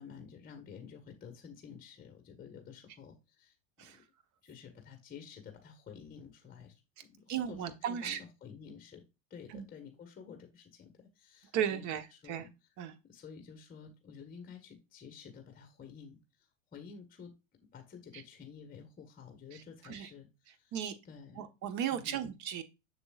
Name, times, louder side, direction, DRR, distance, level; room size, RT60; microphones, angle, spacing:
voice 1, 0.0-4.0 4.4-9.0 9.3-12.5 12.8-17.3 17.6-20.8 21.0-21.4 21.9-22.3, left 6 dB, 20° left, 4 dB, 1.4 m, -51 dB
voice 2, 7.3-8.2 9.5-9.7 11.5-12.4 12.8-12.9 19.8-20.1 20.7-20.9 21.4-22.6, right 9 dB, 50° right, 10 dB, 1.2 m, -35 dB
6.7 x 6.7 x 2.4 m, 0.26 s
hypercardioid pair, 110°, 38 cm